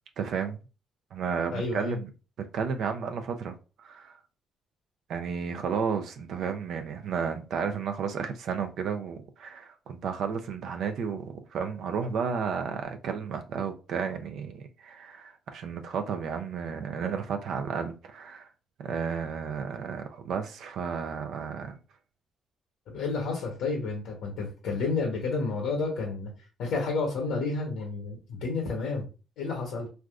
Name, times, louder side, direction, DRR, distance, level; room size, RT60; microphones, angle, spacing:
voice 1, 0.2-0.6 1.1-2.1 2.5-4.2 5.1-18.5 18.8-21.8, right 6 dB, 75° right, 0.4 m, -32 dB
voice 2, 1.5-2.0 22.9-26.3 26.6-29.1 29.4-29.9, left 3 dB, 90° left, 0.8 m, -30 dB
3.3 x 2.5 x 2.3 m
cardioid pair, 90°, 0 cm